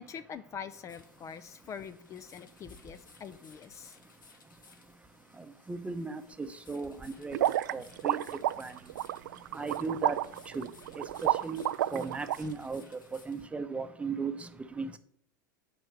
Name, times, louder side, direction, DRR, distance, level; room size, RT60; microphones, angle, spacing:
voice 1, 0.0-4.0, left 7 dB, 30° left, 12 dB, 0.5 m, -44 dB
sound 1, 0.9-13.5, left 4 dB, 90° left, 1.4 m, -60 dB
voice 2, 5.7-7.4 7.7-8.2 8.6-8.7 9.5-10.2 10.5-10.7 11.0-11.6 11.9-12.8 13.3-14.5 14.8-15.0, right 4 dB, 10° right, 9 dB, 0.8 m, -36 dB
sound 2, 7.3-12.4, right 13 dB, 75° right, 0.4 m, -30 dB
7.9 x 4.6 x 6.8 m, 0.67 s
hypercardioid pair, 100°, 10 cm